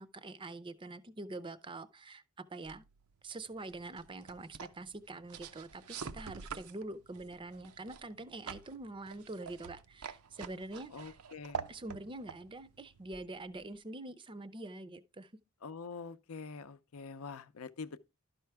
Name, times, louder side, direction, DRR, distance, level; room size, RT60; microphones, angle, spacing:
voice 1, 0.0-2.8 3.2-11.2 11.7-15.3, right 2 dB, 25° right, 0.5 m, -45 dB
sound 1, 2.6-13.8, right 6 dB, 80° right, 0.6 m, -48 dB
voice 2, 10.9-11.7 15.6-18.0, left 5 dB, 75° left, 0.6 m, -45 dB
11.5 x 5.7 x 3.4 m
head